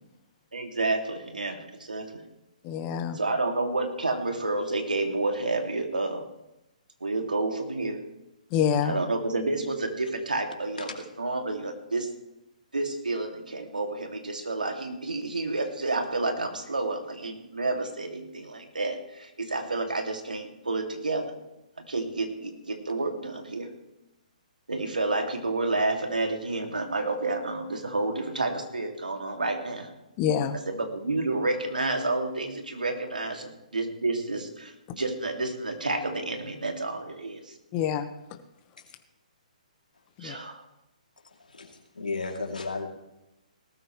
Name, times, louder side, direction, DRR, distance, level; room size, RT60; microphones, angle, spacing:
voice 1, 0.5-2.2 3.2-6.2 7.0-8.0 8.8-12.1 12.7-21.3 21.9-23.7 24.7-29.9 30.8-37.4 40.2-40.6, right 2 dB, 90° right, 4 dB, 2.5 m, -30 dB
voice 2, 2.6-3.2 8.5-9.0 30.2-30.6 37.7-38.4 40.2-40.4, left 8 dB, 30° left, 8 dB, 1.3 m, -27 dB
voice 3, 41.5-42.9, left 3 dB, 90° left, 1 dB, 2.9 m, -34 dB
19.0 x 13.5 x 3.2 m, 0.92 s
hypercardioid pair, 135°, 4 cm